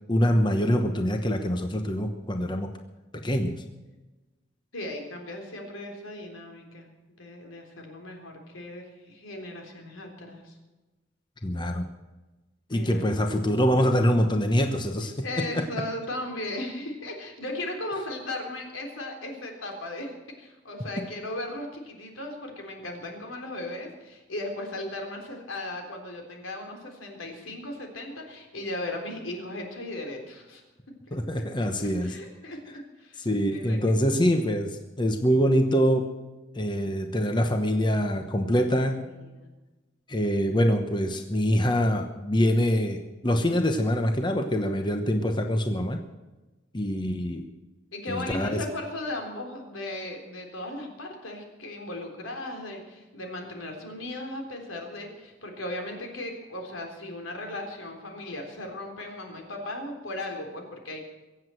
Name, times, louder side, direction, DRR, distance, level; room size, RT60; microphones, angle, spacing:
voice 1, 0.1-2.7 3.1-3.6 11.4-11.8 12.7-15.6 31.1-32.2 33.2-36.1 36.5-39.1 40.1-46.0 46.7-47.4 48.1-48.6, equal, 25° left, 5 dB, 0.9 m, -24 dB
voice 2, 4.7-6.9 7.2-10.6 12.7-13.1 15.2-30.9 31.6-34.2 38.9-39.5 47.9-61.0, left 1 dB, 85° left, 2 dB, 3.7 m, -37 dB
23.5 x 8.1 x 7.7 m, 1.2 s
head